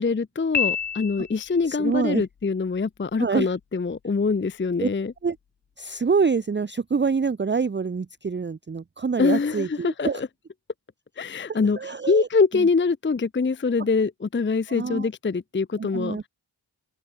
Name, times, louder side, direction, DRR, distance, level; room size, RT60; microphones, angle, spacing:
voice 1, 0.0-5.1 9.2-10.3 11.2-11.8 12.1-16.2, left 4 dB, 30° left, 0.5 m, -24 dB
Piano, 0.5-1.7, left 7 dB, 75° left, 0.9 m, -27 dB
voice 2, 1.7-2.2 3.2-3.5 4.8-4.9 5.2-5.4 5.8-10.2 11.5-12.3 12.5-12.7 14.7-15.1 15.8-16.3, right 5 dB, 25° right, 0.5 m, -26 dB
open air
wide cardioid pair, 55°, 43 cm